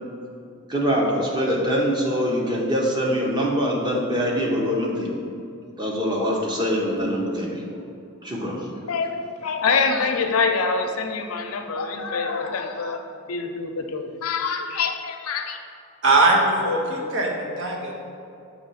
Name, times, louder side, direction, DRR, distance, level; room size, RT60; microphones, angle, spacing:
voice 1, 0.7-5.2 5.8-7.7 8.2-8.7, equal, 20° right, -2 dB, 0.9 m, -24 dB
voice 2, 8.9-15.6, left 4 dB, 85° left, 5 dB, 0.6 m, -25 dB
voice 3, 16.0-17.9, right 2 dB, 60° right, -1 dB, 1.0 m, -20 dB
6.8 x 3.0 x 5.7 m, 2.5 s
head